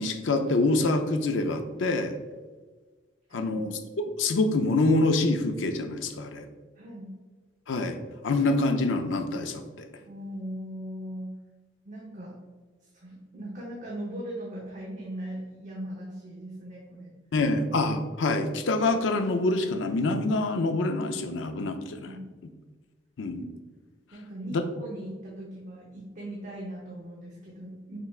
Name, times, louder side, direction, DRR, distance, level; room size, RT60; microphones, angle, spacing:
voice 1, 0.0-2.1 3.3-6.5 7.7-8.0 8.2-9.9 17.3-22.1 23.2-23.5 24.5-24.6, left 2 dB, 90° left, 7 dB, 0.5 m, -26 dB
voice 2, 3.3-3.7 6.8-7.1 10.1-11.4 11.8-12.4 12.9-17.1 22.0-22.3 24.1-28.0, right 1 dB, 45° right, -4 dB, 0.8 m, -39 dB
5.8 x 3.3 x 2.4 m, 1.3 s
head